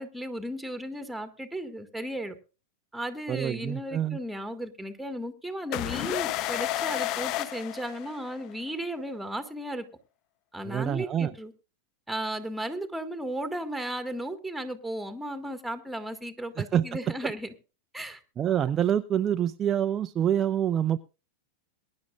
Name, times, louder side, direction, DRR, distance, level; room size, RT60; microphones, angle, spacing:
voice 1, 0.0-2.3 2.9-9.9 10.5-11.5 12.1-17.5 17.9-18.2, right 1 dB, ahead, 9 dB, 1.8 m, -35 dB
voice 2, 3.3-4.2 10.6-11.3 16.6-16.8 17.2-17.3 18.4-21.0, right 10 dB, 25° right, 9 dB, 0.5 m, -26 dB
sound 1, 5.7-8.5, left 14 dB, 40° left, 0.5 m, -31 dB
22.5 x 10.5 x 2.5 m, 0.32 s
figure-of-eight pair, 90°, 0 cm